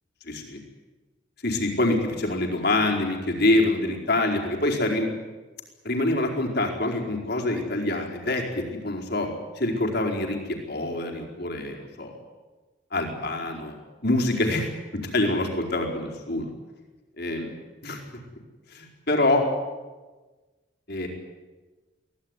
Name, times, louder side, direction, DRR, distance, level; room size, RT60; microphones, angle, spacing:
voice 1, 0.2-0.6 1.4-5.1 5.8-9.3 9.5-12.2 12.9-13.8 14.0-16.5 17.2-17.5 17.8-18.0 18.7-19.4 20.9-21.1, left 2 dB, 55° left, 2 dB, 4.6 m, -25 dB
23.5 x 18.0 x 9.8 m, 1.3 s
head